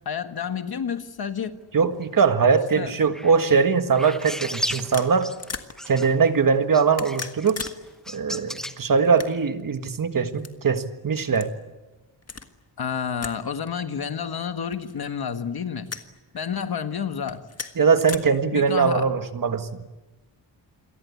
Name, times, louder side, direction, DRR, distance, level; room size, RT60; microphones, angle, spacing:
voice 1, 0.0-1.6 2.8-2.9 12.8-15.9 16.3-17.4 18.5-19.1, left 7 dB, 60° left, 9 dB, 1.6 m, -29 dB
voice 2, 1.7-5.3 5.9-7.6 8.1-11.5 17.8-19.8, right 5 dB, 50° right, 8 dB, 1.6 m, -21 dB
sound 1, 2.9-3.3 4.0-5.5 5.8-6.3 6.7-8.7, equal, ahead, 1.1 m, -34 dB
sound 2, 3.6-3.8 4.7-5.7 6.8-7.8 8.1-8.2 9.0-9.6 10.3-10.5 11.3-11.5 12.2-12.5 13.2-13.4 13.7-13.8 14.7-15.2 15.9-16.1 17.2-18.2, left 4 dB, 35° left, 1.6 m, -36 dB
28.5 x 23.0 x 8.4 m, 1.1 s
wide cardioid pair, 165°, 43 cm